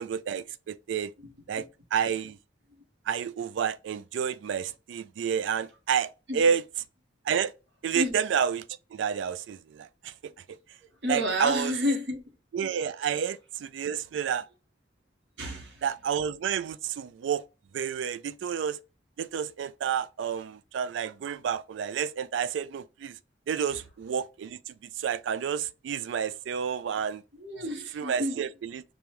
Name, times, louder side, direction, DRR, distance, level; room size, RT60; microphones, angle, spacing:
voice 1, 0.0-1.1 1.5-2.4 3.1-6.6 7.2-7.5 7.8-8.6 8.9-10.6 11.1-11.7 12.5-14.5 15.8-17.4 17.7-18.8 19.2-23.2 23.5-27.2 27.9-28.8, right 7 dB, 90° right, 0.3 m, -30 dB
voice 2, 1.2-1.7 6.3-6.4 7.9-8.2 11.0-12.2 15.4-15.8 23.7-23.8 27.3-28.3, left 1 dB, 75° right, 1.4 m, -31 dB
5.2 x 2.3 x 3.0 m
head